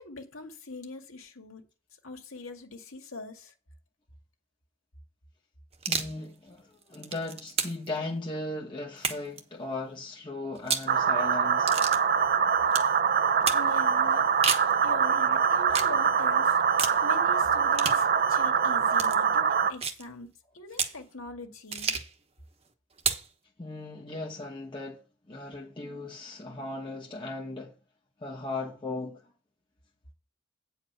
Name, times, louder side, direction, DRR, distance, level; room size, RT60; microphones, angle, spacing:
voice 1, 0.0-1.6 2.0-3.5 13.5-14.2 14.8-20.3 20.5-21.9, left 2 dB, 90° left, 2.0 m, -42 dB
sound 1, 5.7-6.2 6.8-7.9 9.0-9.4 10.6-10.9 11.7-12.0 12.7-12.9 13.5-13.7 14.2-14.7 15.7-15.9 16.8-17.0 17.7-18.0 18.9-19.2 19.8-20.0 20.7-21.0 21.7-22.1 23.0-23.3, right 6 dB, 30° right, 1.1 m, -30 dB
voice 2, 5.9-11.7 23.6-27.7 28.2-29.2, left 2 dB, 25° left, 1.1 m, -37 dB
sound 2, 10.9-19.7, right 6 dB, 45° right, 0.6 m, -24 dB
9.2 x 4.8 x 6.7 m
head